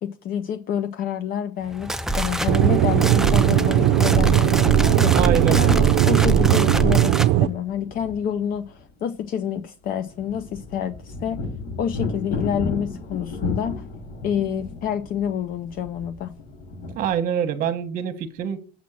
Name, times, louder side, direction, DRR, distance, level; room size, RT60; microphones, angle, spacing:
voice 1, 0.0-5.2 5.5-11.4 11.8-13.7 14.2-16.3, left 9 dB, 45° left, 0.7 m, -28 dB
sound 1, 1.7-7.3, right 2 dB, ahead, 0.3 m, -25 dB
Aircraft / Engine, 2.5-7.5, right 14 dB, 65° right, 0.5 m, -18 dB
voice 2, 5.1-5.8 16.9-18.6, right 8 dB, 45° right, 1.1 m, -25 dB
sound 2, 7.3-8.9 9.2-9.3 9.6-17.2, left 3 dB, 80° left, 5.4 m, -35 dB
7.3 x 6.2 x 7.2 m
cardioid pair, 155°, 20 cm